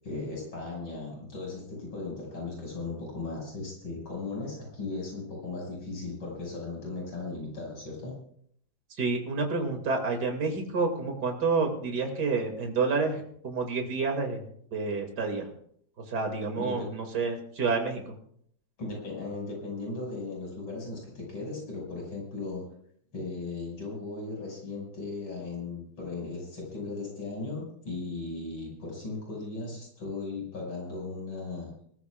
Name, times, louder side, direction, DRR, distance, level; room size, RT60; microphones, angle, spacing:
voice 1, 0.0-8.2 16.6-17.0 18.8-22.6 23.1-31.7, left 3 dB, 80° left, -2 dB, 6.8 m, -37 dB
voice 2, 9.0-14.4 14.7-15.5 16.1-18.1, right 4 dB, 55° right, 3 dB, 2.9 m, -29 dB
25.0 x 15.0 x 2.4 m, 0.64 s
omnidirectional pair, 2.2 m